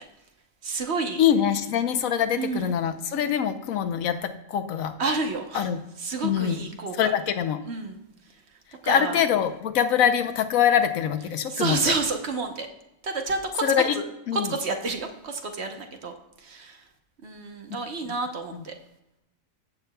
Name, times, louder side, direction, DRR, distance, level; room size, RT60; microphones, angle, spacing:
voice 1, 0.6-1.2 2.4-2.8 5.0-5.7 6.0-7.1 7.7-8.0 8.8-9.2 11.5-12.7 13.0-13.6 13.9-14.0 14.3-16.1 16.4-16.8 17.2-18.7, right 3 dB, 55° right, 4 dB, 1.1 m, -29 dB
voice 2, 1.2-4.9 5.5-5.8 6.2-6.6 7.0-7.6 8.9-11.9 13.6-14.0 14.3-14.5 18.0-18.1, left 8 dB, 85° left, 8 dB, 1.2 m, -24 dB
15.5 x 6.8 x 2.3 m, 0.89 s
omnidirectional pair, 1.4 m